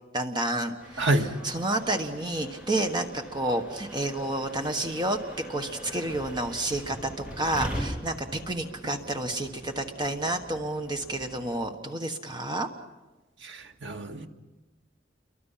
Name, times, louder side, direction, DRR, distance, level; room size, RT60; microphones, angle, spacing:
voice 1, 0.1-1.1 1.4-5.2 5.5-12.7, right 1 dB, 25° right, 5 dB, 1.4 m, -30 dB
sound 1, 0.8-11.6, equal, 5° right, 7.9 m, -41 dB
voice 2, 1.0-1.3 13.4-14.3, right 1 dB, 85° right, 4 dB, 1.9 m, -27 dB
30.0 x 23.5 x 5.8 m, 1.1 s
head